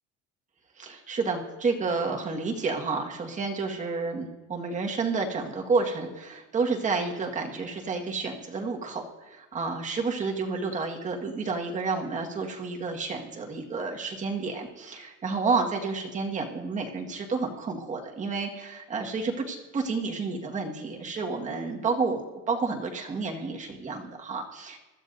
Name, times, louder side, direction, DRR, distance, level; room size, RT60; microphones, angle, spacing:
voice 1, 0.8-24.8, right 4 dB, 25° right, 1 dB, 1.7 m, -30 dB
24.0 x 12.5 x 2.7 m, 1.2 s
cardioid pair, 155°, 31 cm